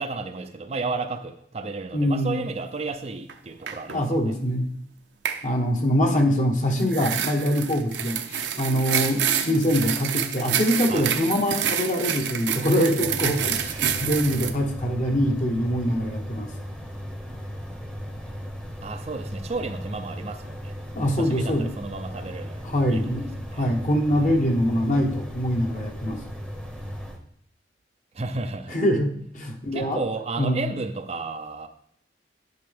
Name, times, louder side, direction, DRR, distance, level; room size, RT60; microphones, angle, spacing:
voice 1, 0.0-4.3 10.9-11.1 18.8-20.8 21.1-23.7 24.2-24.6 28.1-28.8 29.7-31.7, right 3 dB, 35° right, 0.5 m, -33 dB
voice 2, 1.9-2.4 3.9-4.6 5.4-16.5 20.9-21.7 22.6-23.3 23.5-26.2 28.7-30.0 30.4-30.7, equal, 45° left, 1.2 m, -24 dB
sound 1, 3.3-3.4 3.7-4.0 5.3-5.4 6.8-14.5, right 9 dB, 75° right, 0.7 m, -28 dB
sound 2, 13.0-27.2, equal, 5° left, 0.9 m, -37 dB
11.0 x 5.3 x 3.5 m
head